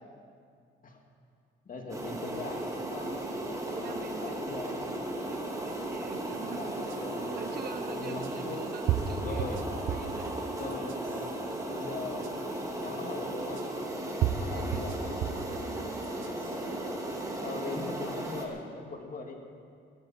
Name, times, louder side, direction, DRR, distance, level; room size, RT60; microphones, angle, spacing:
voice 1, 1.7-3.2 3.9-4.8 6.1-7.4 7.9-8.6 9.1-9.6 10.6-11.0 11.7-12.3 12.7-13.6 14.3-15.0 16.4-16.8 17.3-19.4, left 3 dB, 45° left, 2 dB, 2.4 m, -41 dB
sound 1, 1.9-18.5, right 1 dB, 15° right, 2.4 m, -36 dB
voice 2, 3.6-4.9 5.3-10.3 14.3-14.9 15.3-16.3, right 5 dB, 50° right, 8 dB, 1.1 m, -45 dB
sound 2, 6.9-7.0 8.2-8.3 8.9-10.2 10.7-11.3 12.2-12.3 13.6-13.7 14.2-15.5 16.0-16.6, right 9 dB, 80° right, 0.9 m, -32 dB
20.5 x 12.5 x 4.4 m, 2.3 s
cardioid pair, 90°, 20 cm